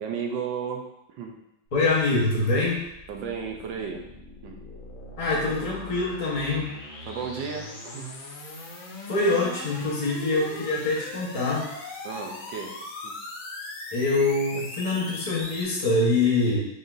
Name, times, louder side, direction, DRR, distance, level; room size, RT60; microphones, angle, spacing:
voice 1, 0.0-1.4 3.1-4.0 4.4-4.6 7.1-8.2 12.0-12.7 13.0-13.1 14.5-14.6, right 6 dB, 75° right, 2 dB, 1.3 m, -34 dB
sound 1, 1.7-15.6, left 2 dB, 85° left, 1.6 m, -40 dB
voice 2, 1.7-2.8 5.2-6.7 9.1-11.6 13.9-16.6, left 2 dB, 25° left, -5 dB, 0.9 m, -24 dB
5.4 x 3.8 x 2.6 m, 0.82 s
omnidirectional pair, 2.0 m